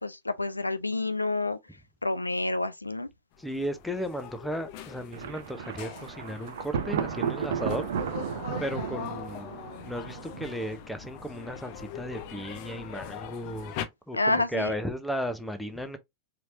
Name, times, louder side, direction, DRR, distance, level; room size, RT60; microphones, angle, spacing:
voice 1, 0.0-1.6 2.0-3.1 14.1-14.7, left 2 dB, 85° left, 0.4 m, -28 dB
sound 1, 3.4-13.8, left 9 dB, 45° left, 0.7 m, -42 dB
voice 2, 3.4-7.9 8.2-9.5 9.8-13.7 14.1-16.0, equal, ahead, 0.7 m, -35 dB
Thunder, 5.1-10.9, right 8 dB, 60° right, 0.5 m, -34 dB
4.4 x 2.8 x 2.6 m
figure-of-eight pair, 90°, 0 cm